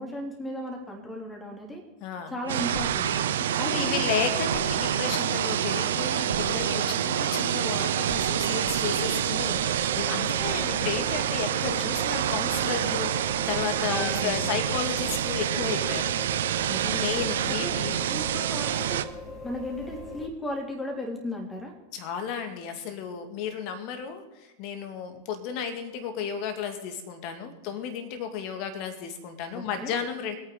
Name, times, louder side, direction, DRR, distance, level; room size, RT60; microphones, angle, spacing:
voice 1, 0.0-1.8 2.3-3.1 3.6-4.1 13.9-14.5 16.7-17.0 17.5-17.7 18.1-19.1 19.4-21.7 29.5-29.9, equal, 10° left, 0 dB, 3.3 m, -35 dB
voice 2, 2.0-2.3 3.6-16.1 16.8-18.0 21.9-30.4, left 7 dB, 45° left, 7 dB, 2.3 m, -33 dB
sound 1, 2.4-9.9 10.3-10.4, right 2 dB, 80° right, 2.5 m, -37 dB
sound 2, 2.5-19.0, right 11 dB, 60° right, 0.6 m, -27 dB
sound 3, 9.4-20.3, left 3 dB, 25° left, 3.3 m, -40 dB
24.0 x 9.1 x 4.1 m, 1.1 s
figure-of-eight pair, 90°, 0 cm